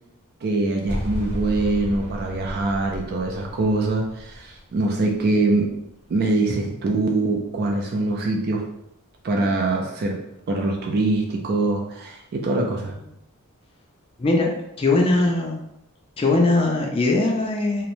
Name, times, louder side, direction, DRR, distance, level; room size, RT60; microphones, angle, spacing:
voice 1, 0.4-5.7 6.1-8.7 9.2-10.2 10.5-12.9, right 2 dB, 45° right, 1 dB, 0.4 m, -23 dB
sound 1, 0.9-6.0, equal, 25° right, 0.8 m, -34 dB
voice 2, 14.2-14.5 14.8-15.6 16.2-17.9, left 2 dB, 25° left, 0 dB, 0.4 m, -20 dB
2.9 x 2.0 x 2.6 m, 0.81 s
head